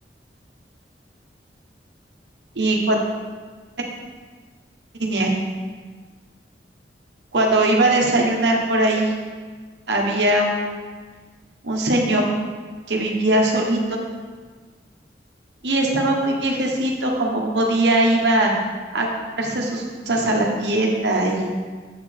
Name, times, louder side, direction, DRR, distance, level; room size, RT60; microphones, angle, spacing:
voice 1, 2.5-3.0 5.0-5.3 7.3-9.1 9.9-10.7 11.6-12.2 12.9-13.8 15.6-18.5 18.9-19.1 19.4-21.5, right 1 dB, 80° right, 0 dB, 1.2 m, -20 dB
7.9 x 4.8 x 4.4 m, 1.5 s
head